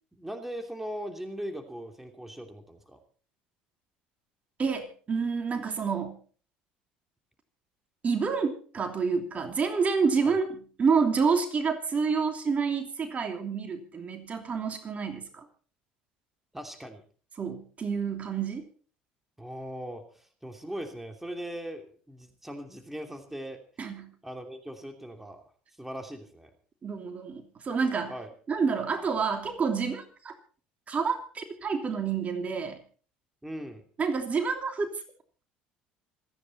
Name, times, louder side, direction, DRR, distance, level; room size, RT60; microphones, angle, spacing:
voice 1, 0.1-3.0 10.2-10.4 16.5-17.0 19.4-23.6 24.2-25.4 25.8-26.5 28.1-28.3 33.4-33.8, equal, 5° right, 5 dB, 2.9 m, -39 dB
voice 2, 4.6-6.2 8.0-15.4 17.4-18.6 23.8-24.1 26.8-28.1 28.5-30.3 30.9-32.8 34.0-35.0, right 5 dB, 35° right, 5 dB, 2.9 m, -28 dB
26.5 x 9.9 x 4.2 m, 0.42 s
hypercardioid pair, 70°, 4 cm